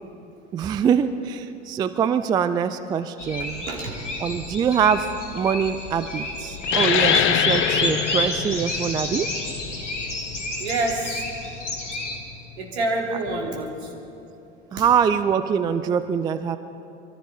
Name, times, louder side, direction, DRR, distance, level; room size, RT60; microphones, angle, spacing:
voice 1, 0.5-3.7 4.2-5.1 5.3-9.3 14.7-16.6, right 7 dB, 15° right, 12 dB, 0.3 m, -23 dB
sound 1, 3.2-12.2, left 2 dB, 80° left, 2.0 m, -29 dB
voice 2, 3.7-4.0 8.0-8.1 10.6-11.2 12.6-13.9 14.8-14.9 15.6-15.7, right 2 dB, 65° right, -1 dB, 3.2 m, -27 dB
sound 2, 6.6-11.8, left 10 dB, 35° left, 0.8 m, -25 dB
23.0 x 14.5 x 4.3 m, 2.8 s
figure-of-eight pair, 80°, 36 cm